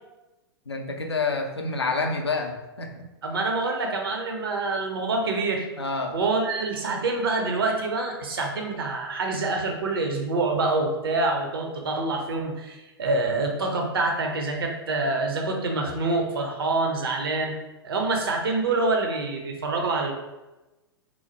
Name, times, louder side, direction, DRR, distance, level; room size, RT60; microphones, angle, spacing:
voice 1, 0.7-3.1 5.8-6.2, left 3 dB, 85° left, 3 dB, 0.4 m, -28 dB
voice 2, 3.2-5.7 6.1-17.5 17.8-20.1, right 3 dB, 65° right, 2 dB, 0.6 m, -26 dB
3.1 x 2.0 x 2.7 m, 1.0 s
figure-of-eight pair, 100°, 13 cm